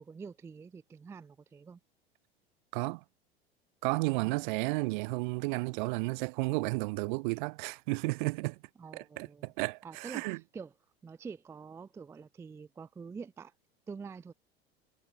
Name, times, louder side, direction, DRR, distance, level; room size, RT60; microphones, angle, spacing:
voice 1, 0.0-1.8 8.8-9.5 9.8-10.3 10.5-10.7 11.0-13.5 13.9-14.3, right 5 dB, 10° right, 0.4 m, -46 dB
voice 2, 2.7-3.0 3.8-8.6 8.9-10.4, right 27 dB, 45° right, 0.8 m, -32 dB
figure-of-eight pair, 80°, 32 cm